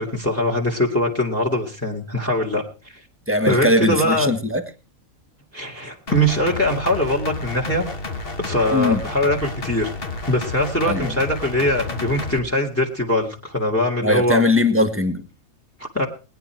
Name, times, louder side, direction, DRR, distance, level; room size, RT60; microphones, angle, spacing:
voice 1, 0.0-3.0 3.4-4.3 5.5-7.9 8.4-9.9 10.3-14.4 15.8-16.1, left 1 dB, 10° left, 1 dB, 2.2 m, -22 dB
voice 2, 3.3-4.6 8.7-9.0 10.8-11.1 14.0-15.2, left 2 dB, 10° right, 10 dB, 1.5 m, -20 dB
sound 1, 6.1-12.4, left 3 dB, 40° left, 1.8 m, -31 dB
21.0 x 10.5 x 4.5 m, 0.35 s
omnidirectional pair, 1.5 m